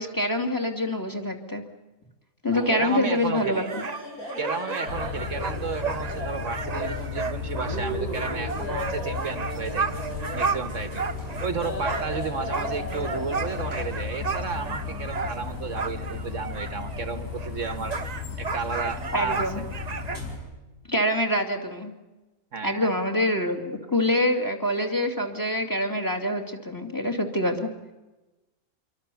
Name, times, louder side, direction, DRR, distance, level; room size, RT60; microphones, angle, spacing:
voice 1, 0.0-1.6 2.4-3.8 19.1-19.6 20.9-21.9 22.6-27.7, left 1 dB, 15° left, 6 dB, 2.7 m, -25 dB
sound 1, 2.5-13.8, left 1 dB, 80° left, 7.7 m, -37 dB
voice 2, 2.7-3.7 4.4-9.9 10.3-11.0 11.4-19.5 22.5-22.9, right 5 dB, 60° right, 10 dB, 1.5 m, -33 dB
sound 2, 3.7-11.6 11.8-17.1 17.4-20.2, right 5 dB, 35° right, 0.9 m, -33 dB
sound 3, 4.8-20.4, left 5 dB, 60° left, 5.5 m, -35 dB
26.5 x 23.5 x 7.0 m, 1.1 s
omnidirectional pair, 1.5 m